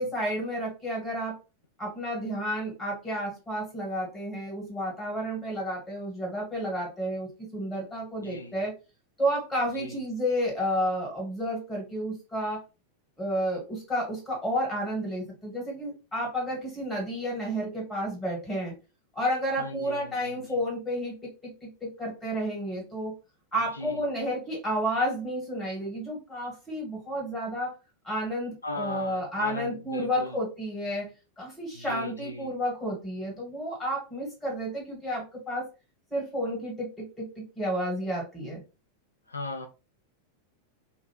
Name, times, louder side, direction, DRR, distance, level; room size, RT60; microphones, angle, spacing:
voice 1, 0.0-1.4 1.8-8.7 9.2-12.6 13.2-18.7 19.2-23.1 23.5-27.7 28.0-31.1 31.4-35.7 36.1-38.6, equal, 10° left, 1.8 m, -31 dB
voice 2, 8.2-8.6 9.7-10.0 19.6-20.6 23.7-24.1 28.6-30.4 31.7-32.5 39.3-39.7, left 1 dB, 80° left, 0.3 m, -38 dB
2.7 x 2.5 x 3.0 m
figure-of-eight pair, 90°, 0 cm